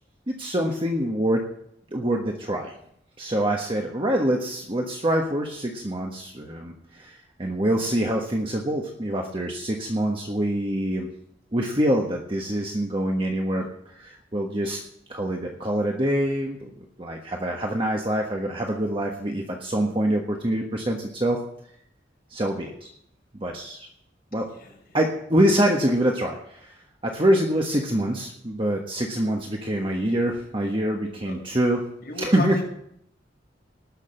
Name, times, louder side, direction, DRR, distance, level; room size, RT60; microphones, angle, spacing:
voice 1, 0.3-1.4 1.9-2.8 3.2-11.1 11.5-14.8 15.1-16.7 17.0-21.4 22.3-22.7 23.3-23.9 24.3-24.5 24.9-31.8 32.2-32.6, right 1 dB, 30° right, 1 dB, 1.3 m, -25 dB
voice 2, 32.0-32.6, left 1 dB, 55° left, -2 dB, 5.8 m, -32 dB
19.0 x 6.5 x 7.7 m, 0.71 s
head